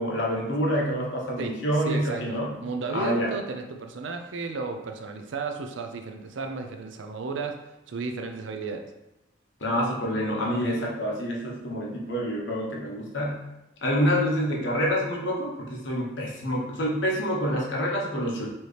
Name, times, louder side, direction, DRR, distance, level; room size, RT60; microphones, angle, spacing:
voice 1, 0.0-2.5 2.9-3.3 9.6-13.4 13.8-18.5, equal, 70° left, -3 dB, 1.0 m, -27 dB
voice 2, 1.8-7.6 7.9-8.9, right 4 dB, 75° right, 5 dB, 0.5 m, -33 dB
4.4 x 2.9 x 3.2 m, 0.98 s
head